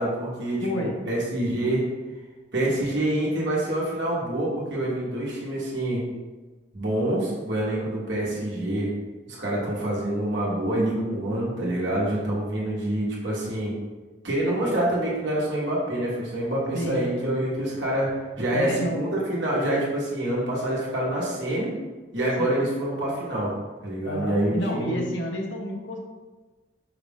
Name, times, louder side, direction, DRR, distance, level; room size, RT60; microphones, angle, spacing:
voice 1, 0.0-1.9 2.5-6.0 6.7-8.9 9.3-13.7 14.2-18.1 18.4-21.7 22.1-23.5 23.8-25.0, right 1 dB, 75° right, -5 dB, 1.3 m, -26 dB
voice 2, 0.6-1.0 16.7-17.1 18.5-19.0 22.4-22.6 24.0-26.0, equal, 80° left, 0 dB, 0.8 m, -30 dB
5.6 x 2.5 x 3.6 m, 1.2 s
head